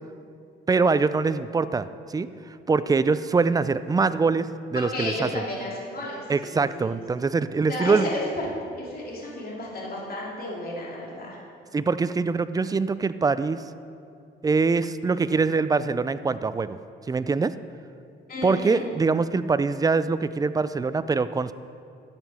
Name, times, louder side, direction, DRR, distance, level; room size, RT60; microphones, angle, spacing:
voice 1, 0.7-2.3 2.7-5.4 6.3-8.1 11.7-13.6 14.4-16.8 17.1-17.5 18.4-21.5, right 4 dB, 20° right, 14 dB, 0.3 m, -23 dB
voice 2, 4.7-7.0 7.7-8.5 8.8-11.4 18.3-18.8, left 1 dB, 50° left, -4 dB, 2.9 m, -32 dB
12.0 x 8.0 x 4.2 m, 2.4 s
cardioid pair, 90°, 20 cm